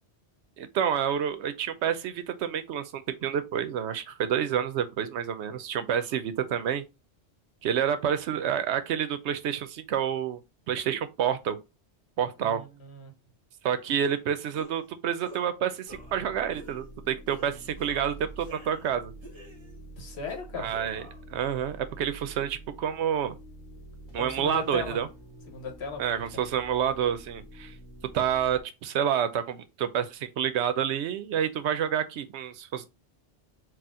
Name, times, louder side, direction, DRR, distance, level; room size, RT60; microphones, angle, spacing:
voice 1, 0.6-6.8 7.6-10.4 10.7-11.6 12.2-12.6 13.6-19.1 20.6-21.0 21.3-23.3 24.1-25.1 26.0-27.7 28.1-32.9, right 9 dB, 75° right, 0.8 m, -28 dB
voice 2, 12.4-13.1 20.0-20.7 24.1-25.0 25.5-26.0 26.3-26.4, left 4 dB, 65° left, 1.2 m, -37 dB
sound 1, 14.0-14.2 14.5-14.9 15.2-15.5 15.8-16.2 16.5-16.8 17.3-17.5 17.8-18.9 19.2-19.8 20.3-21.2, equal, 25° right, 0.9 m, -49 dB
sound 2, 15.9-28.6, right 1 dB, 35° left, 1.5 m, -47 dB
4.2 x 2.4 x 3.6 m
omnidirectional pair, 1.2 m